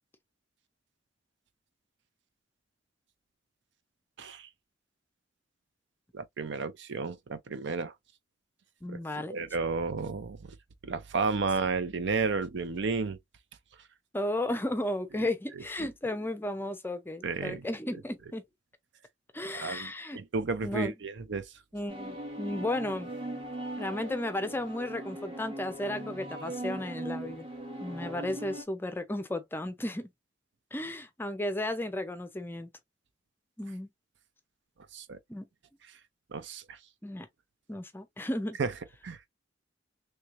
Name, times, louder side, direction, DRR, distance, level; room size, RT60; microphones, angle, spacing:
voice 1, 4.2-4.5 6.1-7.9 8.9-10.4 10.8-13.2 17.2-17.6 19.5-21.5 34.9-35.2 36.3-36.8 38.6-38.7 39.0-39.3, right 4 dB, 70° right, 0.6 m, -32 dB
voice 2, 8.8-9.4 14.1-18.4 19.3-20.2 20.6-20.9 21.7-23.1 23.8-27.5 27.8-30.1 30.7-32.7 33.6-33.9 35.3-35.5 37.0-37.3 37.7-38.6, left 1 dB, 10° left, 0.5 m, -34 dB
sound 1, 21.9-28.6, right 1 dB, 30° right, 1.2 m, -39 dB
3.2 x 3.1 x 2.4 m
head